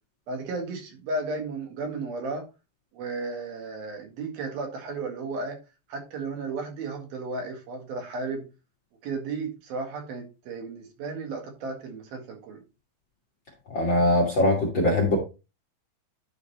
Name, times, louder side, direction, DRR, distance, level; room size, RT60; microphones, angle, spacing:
voice 1, 0.3-2.5 2.9-5.6 5.9-8.5 9.0-12.6, right 3 dB, 75° right, 3.7 m, -34 dB
voice 2, 13.7-15.2, left 1 dB, 45° left, 1.6 m, -22 dB
11.0 x 4.1 x 4.1 m
omnidirectional pair, 4.4 m